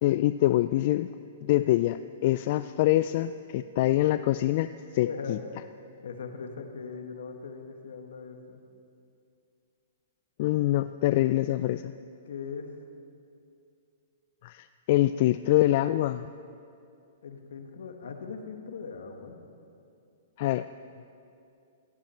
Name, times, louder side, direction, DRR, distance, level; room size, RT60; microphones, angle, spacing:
voice 1, 0.0-1.1 1.4-5.4 10.4-11.9 14.4-16.3 20.4-20.7, left 15 dB, 50° left, 12 dB, 0.3 m, -25 dB
voice 2, 5.0-5.4 6.0-8.6 12.2-12.7 17.2-19.4, left 5 dB, 80° left, 5 dB, 1.7 m, -39 dB
17.0 x 15.5 x 4.5 m, 2.5 s
hypercardioid pair, 135°, 0 cm